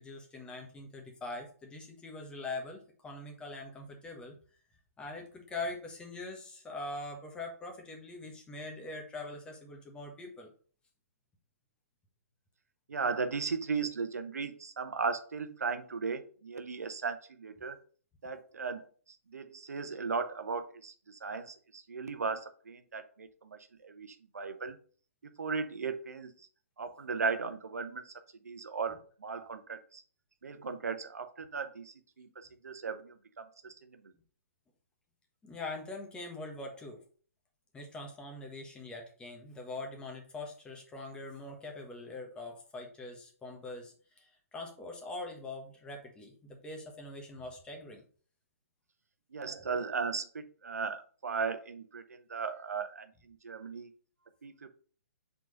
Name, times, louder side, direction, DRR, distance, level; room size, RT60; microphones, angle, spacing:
voice 1, 0.0-4.4 5.0-10.5 28.9-29.0 35.4-37.0 37.7-48.0, left 2 dB, 10° left, 1 dB, 1.3 m, -43 dB
voice 2, 12.9-17.8 18.2-24.8 25.4-26.3 26.8-28.1 28.4-30.0 30.4-34.0 49.3-53.9 54.4-54.7, right 5 dB, 80° right, 9 dB, 0.7 m, -37 dB
4.6 x 4.0 x 5.1 m, 0.43 s
hypercardioid pair, 135°, 8 cm